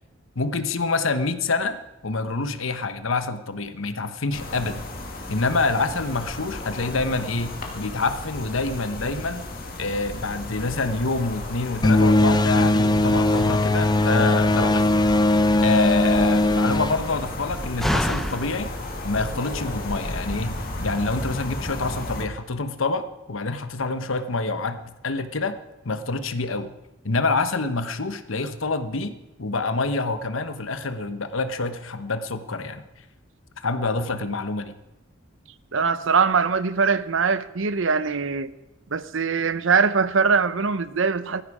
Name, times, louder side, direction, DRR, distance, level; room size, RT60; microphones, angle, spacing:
voice 1, 0.3-1.8 2.0-4.8 5.3-9.4 9.8-15.0 15.6-18.7 19.0-25.6 25.8-26.7 27.0-32.8 33.6-34.7, left 3 dB, 75° left, 1.1 m, -27 dB
sound 1, 4.3-22.3, left 1 dB, 45° left, 2.4 m, -34 dB
sound 2, 11.8-17.8, left 1 dB, 20° left, 0.4 m, -19 dB
Slam, 17.2-20.0, equal, ahead, 0.8 m, -34 dB
voice 2, 35.7-38.5 38.9-41.4, right 5 dB, 65° right, 0.7 m, -22 dB
17.5 x 14.5 x 4.9 m
head